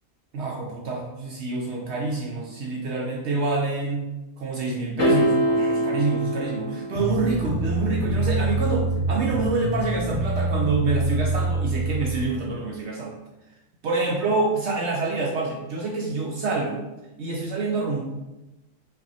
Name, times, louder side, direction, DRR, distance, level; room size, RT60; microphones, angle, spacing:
voice 1, 0.3-4.0 4.4-13.1 13.8-16.8 17.2-18.0, right 3 dB, 65° right, -2 dB, 0.8 m, -27 dB
sound 1, 5.0-7.4, equal, 70° left, 1.0 m, -24 dB
sound 2, 6.9-12.3, right 2 dB, 15° right, 1.2 m, -25 dB
5.4 x 2.7 x 2.7 m, 1.0 s
omnidirectional pair, 1.3 m